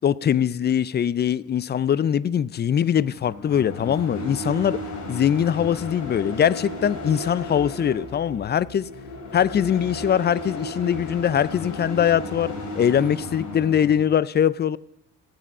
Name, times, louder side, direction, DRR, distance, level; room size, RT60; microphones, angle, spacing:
voice 1, 0.0-4.8 5.1-8.9 9.3-14.8, left 9 dB, 35° left, 0.4 m, -22 dB
sound 1, 2.9-14.0, left 2 dB, 75° left, 2.8 m, -34 dB
18.5 x 7.6 x 5.5 m
cardioid pair, 90°, 30 cm